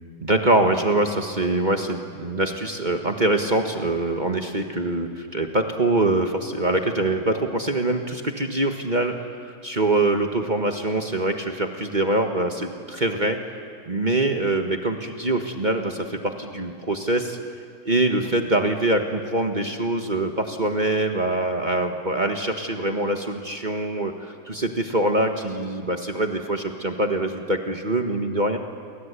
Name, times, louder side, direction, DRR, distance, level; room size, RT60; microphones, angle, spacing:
voice 1, 0.2-13.4 13.9-17.4 17.9-28.6, right 2 dB, 25° right, 4 dB, 1.6 m, -24 dB
29.5 x 23.5 x 8.4 m, 2.3 s
omnidirectional pair, 1.9 m